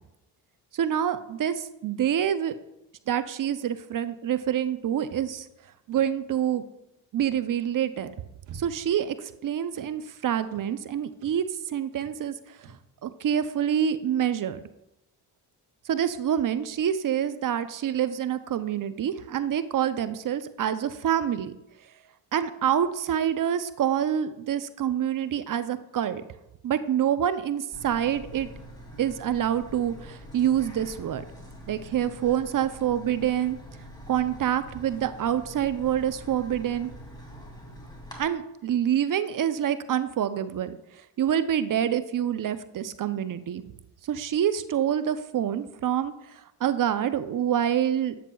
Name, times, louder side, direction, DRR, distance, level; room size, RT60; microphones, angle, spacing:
voice 1, 0.7-2.6 3.1-5.5 5.9-6.6 7.1-8.1 8.5-12.3 13.0-14.6 15.9-21.5 22.3-26.2 26.6-28.5 29.0-31.2 31.7-33.6 34.1-36.9 38.2-40.8 41.2-43.6 44.1-46.1 46.6-48.2, right 9 dB, 45° right, 12 dB, 0.5 m, -26 dB
sound 1, 5.0-6.4 7.9-9.1 9.3-10.0 10.4-10.7 11.1-11.5 11.9-12.3 12.6-12.9, right 5 dB, 85° right, 1.1 m, -49 dB
sound 2, 27.7-38.2, equal, 10° left, 2.4 m, -45 dB
9.1 x 7.2 x 2.3 m, 0.89 s
supercardioid pair, 65°, 46 cm